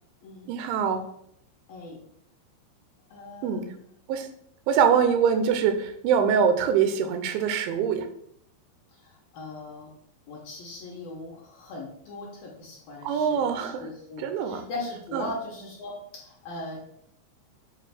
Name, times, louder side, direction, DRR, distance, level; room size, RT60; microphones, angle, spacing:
voice 1, 0.5-1.0 3.4-3.6 4.1-4.3 4.7-8.1 13.0-13.9 14.2-14.7 15.1-15.3, right 7 dB, 85° right, 7 dB, 3.1 m, -24 dB
voice 2, 1.7-2.0 3.1-3.9 8.9-9.9 10.3-17.0, left 2 dB, 65° left, -4 dB, 2.4 m, -39 dB
8.1 x 2.8 x 6.0 m, 0.70 s
omnidirectional pair, 5.3 m